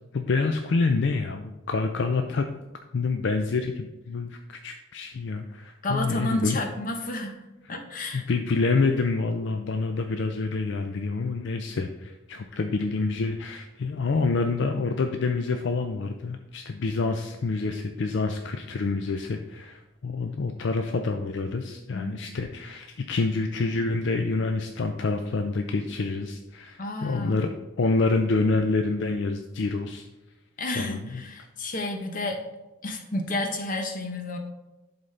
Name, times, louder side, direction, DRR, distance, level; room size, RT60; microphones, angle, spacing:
voice 1, 0.1-2.4 2.9-6.6 7.1-7.2 8.1-27.5 27.8-30.1 30.8-31.2, left 3 dB, 65° left, 5 dB, 0.4 m, -27 dB
voice 2, 5.8-7.4 7.7-8.2 21.9-22.1 26.8-27.4 30.6-32.4 32.8-34.4, left 2 dB, 45° left, 4 dB, 0.9 m, -31 dB
11.0 x 4.0 x 3.3 m, 1.0 s
head